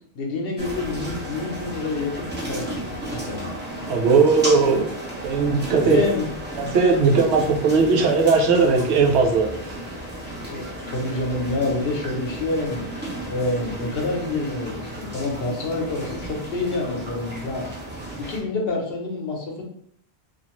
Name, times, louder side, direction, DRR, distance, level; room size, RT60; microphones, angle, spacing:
voice 1, 0.1-3.5 5.8-6.3 10.5-12.8 13.3-17.6 18.2-19.6, left 2 dB, 65° left, 1 dB, 0.9 m, -27 dB
sound 1, 0.6-18.4, right 1 dB, 15° right, 0.5 m, -34 dB
voice 2, 3.9-4.9 5.2-6.0 6.6-9.5, right 4 dB, 90° right, 2 dB, 0.9 m, -18 dB
2.5 x 2.5 x 2.9 m, 0.69 s
omnidirectional pair, 1.1 m